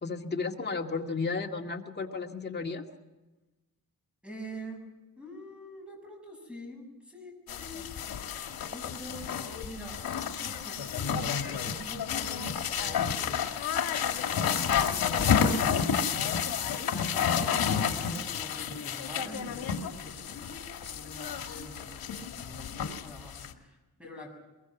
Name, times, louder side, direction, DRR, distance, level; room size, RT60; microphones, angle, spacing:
voice 1, 0.0-2.8, left 4 dB, 30° left, 2 dB, 2.0 m, -33 dB
voice 2, 4.2-4.8 5.2-7.9 8.7-9.4 9.6-10.0 10.4-11.2 11.4-13.3 14.6-15.5 16.9-20.6 20.9-24.3, equal, 5° right, 2 dB, 7.0 m, -45 dB
sound 1, 7.5-23.5, left 7 dB, 80° left, 2.0 m, -30 dB
23.0 x 22.5 x 6.1 m, 1.1 s
wide cardioid pair, 145°, 36 cm